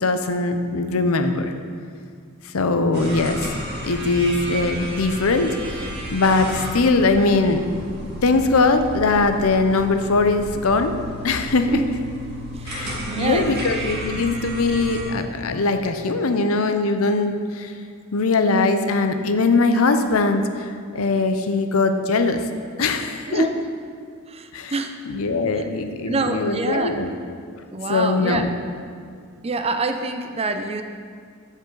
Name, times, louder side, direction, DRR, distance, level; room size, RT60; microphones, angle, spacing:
voice 1, 0.0-1.5 2.5-3.5 3.8-10.9 11.2-11.8 12.7-17.8 18.1-22.4 22.8-23.4 24.5-24.7 25.1-27.1 27.9-28.5, left 3 dB, 80° left, 8 dB, 0.7 m, -21 dB
sound 1, 2.9-15.0, equal, 50° right, 1.9 m, -33 dB
voice 2, 13.1-13.5 14.1-14.2 23.3-23.5 24.3-25.0 25.5-25.7 26.1-27.0 27.7-28.4 29.4-30.8, right 3 dB, 30° right, 7 dB, 0.5 m, -26 dB
13.5 x 5.4 x 3.9 m, 2.1 s
head